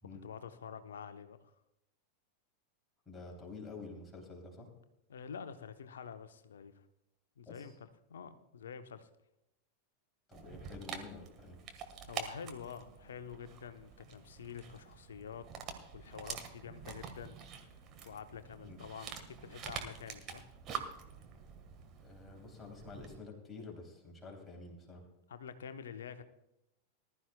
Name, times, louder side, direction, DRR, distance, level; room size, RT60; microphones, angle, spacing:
voice 1, 0.1-1.5 5.1-6.8 7.4-9.1 12.1-15.5 15.9-17.4 18.0-20.4 25.3-26.2, left 7 dB, 65° left, 10 dB, 0.9 m, -47 dB
voice 2, 3.0-4.7 7.5-7.7 10.3-11.6 18.6-18.8 22.0-25.1, left 3 dB, 15° left, 0 dB, 3.2 m, -49 dB
Dog, 10.3-23.2, right 6 dB, 30° right, 1.5 m, -47 dB
19.5 x 12.5 x 2.3 m, 0.86 s
figure-of-eight pair, 90°, 0 cm